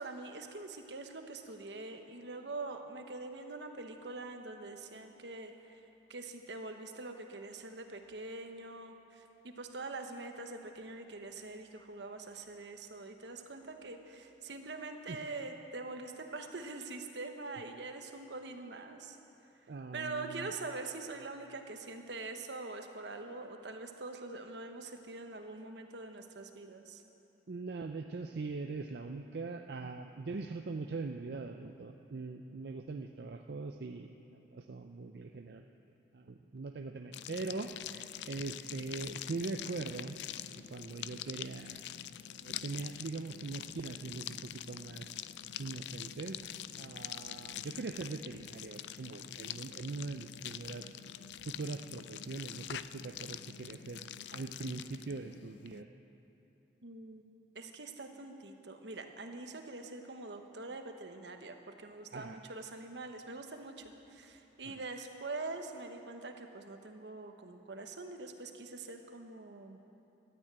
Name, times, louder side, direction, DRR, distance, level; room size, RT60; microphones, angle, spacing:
voice 1, 0.0-5.8 6.1-19.2 19.9-27.0 56.8-69.8, right 3 dB, 85° right, 5 dB, 1.1 m, -44 dB
voice 2, 19.7-20.5 27.5-35.6 36.1-40.2 40.5-41.8 42.4-45.1 45.6-46.5 46.8-50.9 51.5-55.9 62.1-62.4 64.7-64.8, right 3 dB, 70° right, 5 dB, 0.5 m, -42 dB
sound 1, 37.1-55.8, left 11 dB, 80° left, 0.4 m, -45 dB
13.5 x 9.4 x 8.9 m, 3.0 s
head